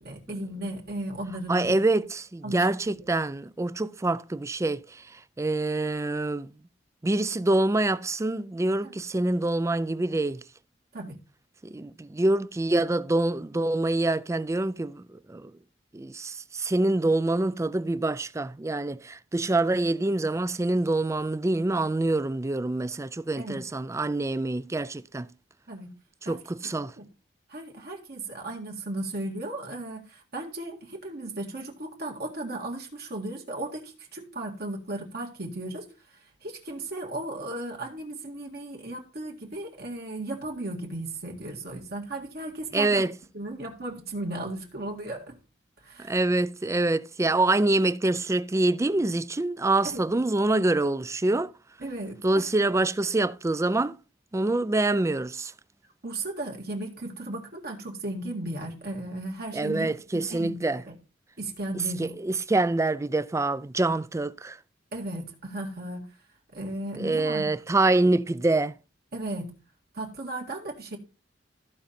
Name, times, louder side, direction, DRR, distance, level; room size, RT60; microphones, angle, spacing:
voice 1, 0.0-1.8 2.4-2.7 3.0-3.1 8.8-8.9 10.9-11.2 23.4-23.7 25.7-25.9 26.3-27.1 27.5-43.1 43.3-45.4 45.8-46.2 49.8-50.0 51.8-52.5 56.0-60.9 61.4-62.1 64.9-66.1 66.5-67.5 69.1-69.5 69.9-71.0, right 1 dB, 60° right, 1.9 m, -36 dB
voice 2, 1.5-6.5 7.0-10.4 11.6-15.5 15.9-25.3 26.2-26.9 42.7-43.1 46.0-51.5 52.2-54.0 54.3-55.5 59.5-60.8 61.7-64.6 67.0-68.8, right 2 dB, 15° right, 0.4 m, -26 dB
14.0 x 5.1 x 4.3 m
head